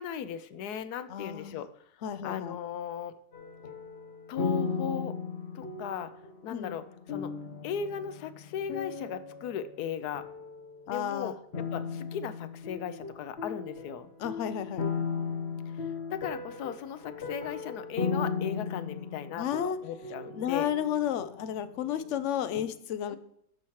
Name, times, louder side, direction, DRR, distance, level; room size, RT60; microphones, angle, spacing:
voice 1, 0.0-1.7 2.2-3.1 4.3-5.1 5.5-6.1 6.4-7.3 7.6-10.2 10.9-14.1 16.1-20.7 23.1-23.2, left 8 dB, 80° left, 12 dB, 1.1 m, -37 dB
voice 2, 1.1-1.7 2.0-2.6 6.5-6.8 10.9-11.4 14.2-14.9 19.3-19.8 20.4-23.2, left 10 dB, 65° left, 12 dB, 0.8 m, -32 dB
sound 1, 3.3-9.9 10.1-11.0 11.5-22.2 22.5-22.6, left 5 dB, 45° left, 1.2 m, -37 dB
14.0 x 5.7 x 3.1 m, 0.75 s
omnidirectional pair, 1.7 m